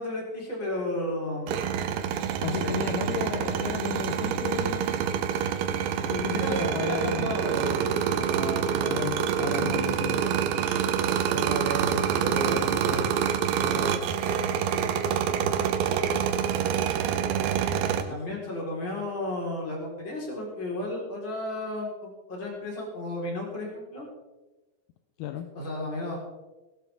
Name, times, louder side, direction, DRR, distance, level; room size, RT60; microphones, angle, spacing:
voice 1, 0.0-1.7 2.4-2.7 6.3-8.9 9.4-9.5 11.3-13.1 13.5-14.1 18.0-24.1 25.5-26.2, left 1 dB, 30° left, -2 dB, 4.3 m, -33 dB
sound 1, 1.5-18.0, right 8 dB, 75° right, 2.7 m, -26 dB
voice 2, 2.4-5.0 6.0-7.4 8.9-10.3 17.9-18.2 25.2-25.5, left 10 dB, 80° left, 7 dB, 2.4 m, -34 dB
19.0 x 12.0 x 3.5 m, 1.1 s
omnidirectional pair, 4.9 m